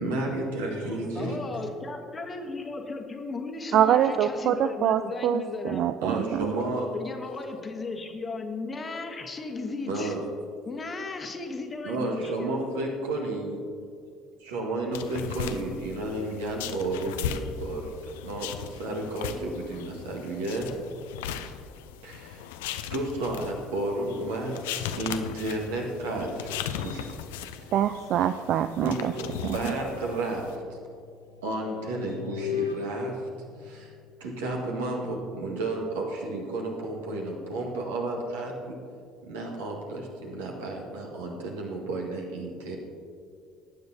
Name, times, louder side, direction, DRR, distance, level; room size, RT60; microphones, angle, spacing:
voice 1, 0.0-1.4 6.0-6.9 9.9-10.2 11.8-13.6 14.5-17.9 18.2-20.7 22.0-22.4 22.9-24.5 25.0-27.2 28.8-30.6 31.4-33.2 33.6-33.9 34.2-38.7 39.3-42.8, right 2 dB, 70° right, -1 dB, 1.8 m, -32 dB
voice 2, 1.1-5.9 6.9-10.1 10.6-12.5, left 3 dB, 25° left, 5 dB, 1.2 m, -35 dB
voice 3, 3.7-6.5 27.7-29.1 29.4-29.6, right 10 dB, 50° right, 11 dB, 0.3 m, -24 dB
sound 1, 14.9-30.6, left 9 dB, 65° left, 0.5 m, -38 dB
sound 2, 26.4-28.5 29.0-34.2, left 6 dB, 85° left, 1.0 m, -39 dB
19.0 x 9.3 x 2.8 m, 2.3 s
figure-of-eight pair, 55°, 0 cm